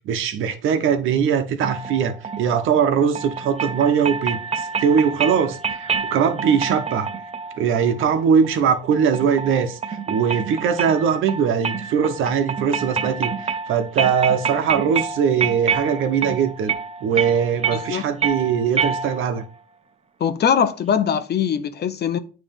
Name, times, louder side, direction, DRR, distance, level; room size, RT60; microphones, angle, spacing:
voice 1, 0.0-7.1 7.6-16.7 17.0-19.4, right 7 dB, 85° right, 1.0 m, -21 dB
sound 1, 1.6-19.5, right 6 dB, 30° right, 0.7 m, -28 dB
voice 2, 17.7-18.1 20.2-22.2, left 8 dB, 55° left, 0.8 m, -21 dB
9.0 x 3.3 x 5.3 m
cardioid pair, 90°, 20 cm